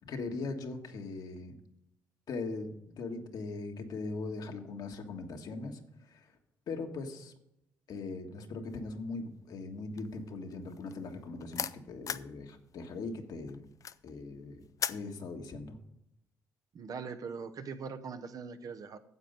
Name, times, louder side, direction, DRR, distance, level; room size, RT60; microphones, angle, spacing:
voice 1, 0.0-1.5 2.3-6.3 6.7-7.3 7.9-13.6 14.0-15.8, left 3 dB, 70° left, 4 dB, 1.5 m, -40 dB
sound 1, 8.7-9.1 9.4-12.4 12.7-15.1, left 7 dB, 50° left, 0.5 m, -38 dB
voice 2, 16.7-19.0, right 5 dB, 60° right, 8 dB, 0.9 m, -41 dB
9.7 x 7.6 x 5.2 m, 0.82 s
supercardioid pair, 55°, 7 cm